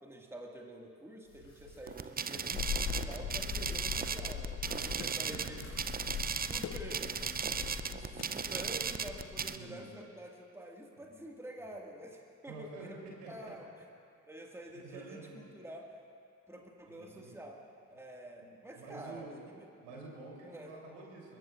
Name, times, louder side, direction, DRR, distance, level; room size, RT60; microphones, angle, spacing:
voice 1, 0.0-5.6 6.5-13.0 13.3-13.9 14.3-16.0 16.5-17.6 17.9-19.3 19.6-19.7 20.4-20.7, equal, 5° right, 0 dB, 2.0 m, -48 dB
sound 1, 1.2-4.9 5.2-6.0, left 1 dB, 80° left, 4.3 m, -48 dB
sound 2, 1.9-9.6, right 6 dB, 20° right, 0.6 m, -36 dB
sound 3, 2.5-9.5, left 9 dB, 40° left, 0.6 m, -41 dB
voice 2, 4.9-5.8 6.4-6.6 9.5-9.9 12.5-13.5 14.7-15.4 16.8-17.4 18.4-19.4 19.8-21.4, right 3 dB, 70° right, -3 dB, 3.6 m, -49 dB
22.5 x 22.0 x 2.5 m, 2.4 s
figure-of-eight pair, 45°, 42 cm